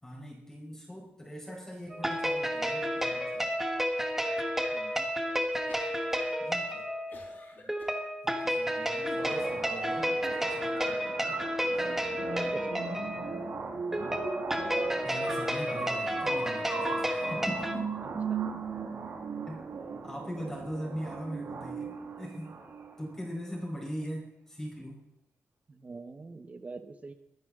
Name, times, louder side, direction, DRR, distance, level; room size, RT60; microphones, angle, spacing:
voice 1, 0.0-3.5 6.4-6.8 8.2-10.1 10.4-11.4 15.0-17.9 19.5-19.6 20.0-22.5 23.0-25.0, equal, 10° left, -3 dB, 4.8 m, -41 dB
sound 1, 1.9-17.7, equal, 5° right, 1.5 m, -31 dB
voice 2, 4.7-5.1 7.6-7.7 10.9-11.1 12.3-12.9 18.3-18.5 25.7-27.1, right 3 dB, 30° right, 9 dB, 1.3 m, -45 dB
sound 2, 5.5-6.3 6.6-8.0 8.6-9.3 10.0-10.4, left 3 dB, 45° left, 5.7 m, -50 dB
sound 3, 9.2-23.1, right 5 dB, 65° right, 2.4 m, -38 dB
22.0 x 10.5 x 3.9 m, 0.81 s
wide cardioid pair, 150°, 5 cm